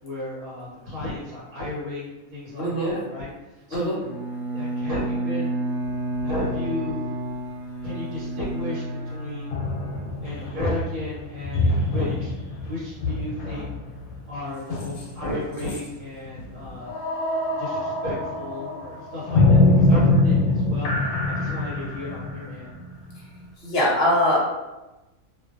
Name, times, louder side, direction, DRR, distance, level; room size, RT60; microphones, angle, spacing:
voice 1, 0.0-3.3 3.7-4.0 4.5-5.6 5.8-7.1 7.8-9.5 10.2-12.3 12.6-13.7 14.3-17.0 17.6-22.7, left 1 dB, 65° right, -9 dB, 1.4 m, -33 dB
voice 2, 2.6-3.0 3.7-4.0 23.6-24.4, left 1 dB, 50° left, -5 dB, 0.8 m, -21 dB
Bowed string instrument, 4.0-10.6, right 1 dB, 5° right, 0.5 m, -31 dB
sound 1, 6.2-6.3 9.5-15.3 15.6-15.9 16.8-23.5, left 2 dB, 75° left, 1.0 m, -24 dB
2.5 x 2.5 x 2.4 m, 1.0 s
omnidirectional pair, 1.6 m